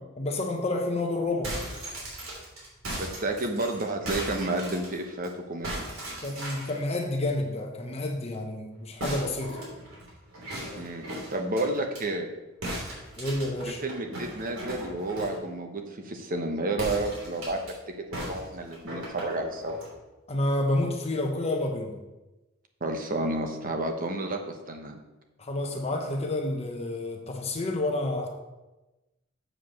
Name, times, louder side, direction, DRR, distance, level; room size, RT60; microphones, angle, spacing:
voice 1, 0.2-1.6 6.2-9.6 13.2-13.8 20.3-22.0 25.4-28.4, left 2 dB, 30° left, 2 dB, 0.9 m, -29 dB
sound 1, 1.3-5.3 5.6-6.8 9.0-12.0 12.6-15.4 16.7-17.7 18.1-19.9, right 1 dB, 85° right, 3.2 m, -37 dB
voice 2, 2.9-5.7 10.7-11.0 11.3-12.3 13.8-17.7 18.1-19.8 22.8-25.0, right 2 dB, 45° right, 4 dB, 1.1 m, -31 dB
7.7 x 4.9 x 6.4 m, 1.1 s
head